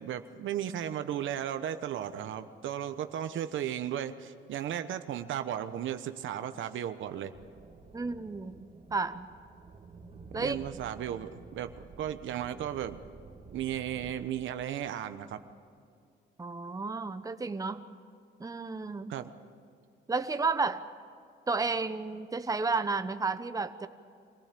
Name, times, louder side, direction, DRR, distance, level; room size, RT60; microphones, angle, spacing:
voice 1, 0.0-7.3 10.3-11.7 12.0-13.0 13.5-15.4 19.1-19.3, right 10 dB, 75° right, 10 dB, 1.1 m, -35 dB
sound 1, 7.3-14.1, right 4 dB, 35° right, 2.2 m, -51 dB
voice 2, 7.9-9.3 10.3-10.6 16.4-17.8 18.4-19.1 20.1-20.8 21.5-23.9, right 4 dB, 15° right, 9 dB, 1.0 m, -32 dB
24.5 x 16.0 x 8.4 m, 2.4 s
cardioid pair, 90°, 20 cm